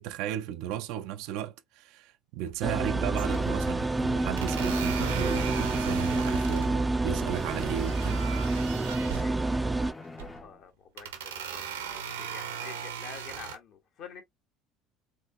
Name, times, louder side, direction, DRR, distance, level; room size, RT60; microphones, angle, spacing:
voice 1, 0.0-8.2, right 11 dB, 60° right, 0.6 m, -35 dB
sound 1, 2.4-2.8 3.1-3.7 4.4-6.7 7.3-9.3 10.0-10.4 11.0-13.6, right 8 dB, 75° right, 1.0 m, -38 dB
sound 2, 2.6-9.9, right 2 dB, 15° right, 0.6 m, -28 dB
Bowed string instrument, 3.2-10.6, left 2 dB, 15° left, 0.8 m, -43 dB
voice 2, 9.1-14.2, left 7 dB, 55° left, 1.8 m, -48 dB
4.8 x 3.7 x 2.6 m
figure-of-eight pair, 65°, 0 cm